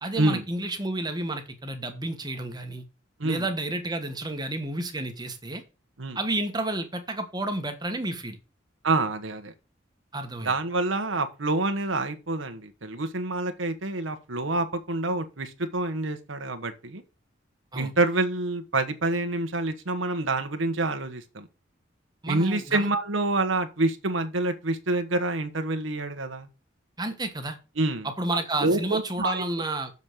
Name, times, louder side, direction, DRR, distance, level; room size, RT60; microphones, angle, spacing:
voice 1, 0.0-2.8 3.2-5.6 6.1-8.4 10.1-10.5 17.7-17.9 22.2-22.9 27.0-27.6 28.0-29.9, right 2 dB, 20° right, 1.4 m, -31 dB
voice 2, 8.8-9.5 10.4-17.0 17.7-21.5 22.3-26.5 27.8-28.1 28.6-29.4, right 2 dB, 85° right, 1.3 m, -27 dB
7.3 x 5.4 x 6.1 m
head